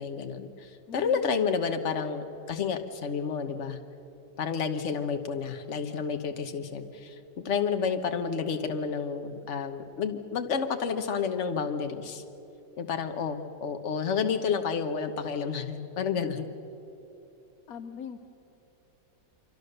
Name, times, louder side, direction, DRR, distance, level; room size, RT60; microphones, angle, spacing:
voice 1, 0.0-3.8 4.4-12.2 12.8-16.4, left 6 dB, 45° left, 7 dB, 1.4 m, -30 dB
voice 2, 0.9-1.2 17.7-18.2, left 7 dB, 60° left, 8 dB, 1.2 m, -40 dB
25.5 x 24.0 x 6.8 m, 2.9 s
omnidirectional pair, 1.9 m